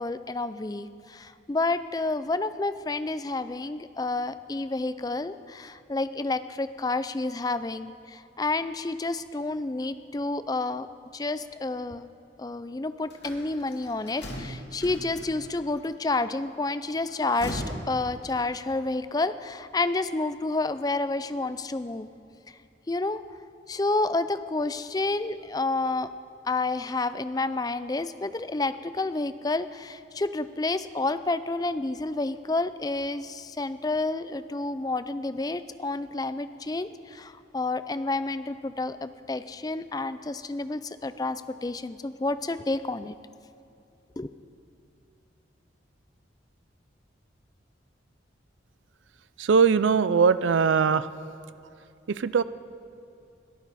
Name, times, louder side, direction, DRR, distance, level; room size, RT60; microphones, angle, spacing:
voice 1, 0.0-10.9 11.1-12.1 12.4-22.1 22.9-23.2 23.7-26.1 26.5-43.1 44.2-44.3, left 2 dB, 20° left, 13 dB, 0.4 m, -30 dB
sound 1, 13.1-15.7 17.0-18.8, equal, 65° left, 2.3 m, -39 dB
voice 2, 49.4-51.1 52.1-52.4, right 5 dB, 85° right, 15 dB, 0.5 m, -21 dB
21.5 x 13.5 x 4.2 m, 2.7 s
head